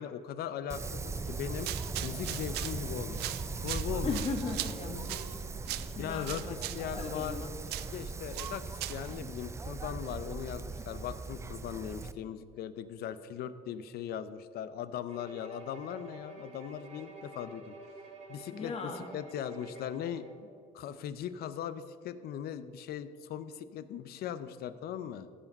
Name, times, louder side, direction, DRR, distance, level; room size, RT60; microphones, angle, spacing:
voice 1, 0.0-1.7 2.0-3.2 3.6-4.2 5.7-7.4 7.9-17.8 18.3-20.3 20.7-25.3, left 9 dB, 70° left, 13 dB, 0.6 m, -39 dB
Wind, 0.7-12.1, right 4 dB, 15° right, 0.4 m, -39 dB
sound 1, 1.5-9.2, right 15 dB, 75° right, 0.4 m, -41 dB
voice 2, 4.0-5.3 5.7-7.5 18.5-19.1, left 4 dB, 35° left, 3 dB, 1.6 m, -38 dB
Bowed string instrument, 15.1-20.4, right 2 dB, 40° right, 2.1 m, -50 dB
15.0 x 5.0 x 5.3 m, 2.3 s
cardioid pair, 110°, 17 cm